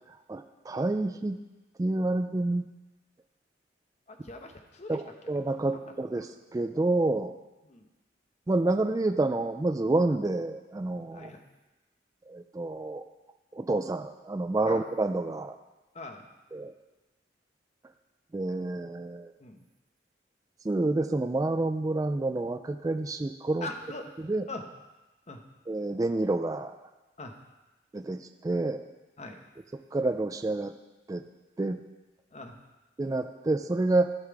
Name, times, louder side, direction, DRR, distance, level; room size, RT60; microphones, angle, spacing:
voice 1, 0.1-1.4 1.8-2.7 4.9-7.3 8.5-11.3 12.3-13.0 13.5-15.6 16.5-16.7 18.3-19.3 20.6-23.7 24.2-24.4 25.7-26.8 27.9-28.9 29.9-30.7 31.1-31.2 31.6-31.8 33.0-34.1, right 2 dB, 20° right, 8 dB, 0.3 m, -28 dB
voice 2, 4.1-5.0 7.7-7.9 11.1-11.4 14.7-14.8 15.9-16.2 19.4-19.6 23.6-24.1 24.5-24.7 25.3-25.4 27.2-27.4 29.2-29.4 32.3-32.6, left 2 dB, 40° left, 4 dB, 0.9 m, -41 dB
12.0 x 5.7 x 4.7 m, 1.1 s
head